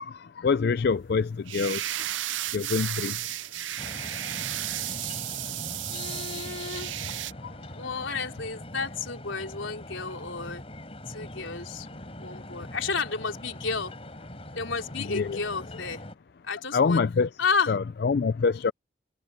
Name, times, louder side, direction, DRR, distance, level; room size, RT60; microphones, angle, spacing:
voice 1, 0.0-1.9 2.5-3.2 7.4-7.5 15.1-15.4 16.7-17.3 17.7-18.7, left 5 dB, 55° left, 0.4 m, -25 dB
sound 1, 1.5-7.3, right 14 dB, 75° right, 0.6 m, -33 dB
voice 2, 2.8-3.2 5.9-7.0 7.8-10.6 11.1-11.9 12.2-14.0 14.5-16.0 16.4-17.0 17.4-17.8, left 5 dB, 85° left, 4.0 m, -32 dB
sound 2, 3.8-16.2, left 1 dB, 30° left, 4.6 m, -42 dB
head